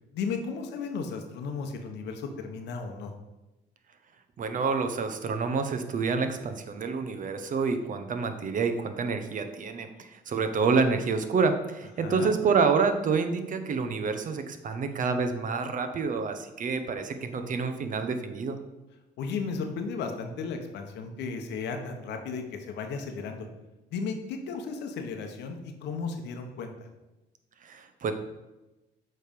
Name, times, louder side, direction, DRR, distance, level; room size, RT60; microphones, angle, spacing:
voice 1, 0.1-3.1 12.0-12.3 19.2-23.5 23.9-26.9, left 5 dB, 75° left, 5 dB, 1.0 m, -34 dB
voice 2, 4.4-18.6 27.6-28.1, right 5 dB, 50° right, 8 dB, 0.8 m, -28 dB
7.5 x 3.4 x 5.2 m, 1.0 s
supercardioid pair, 80°, 18 cm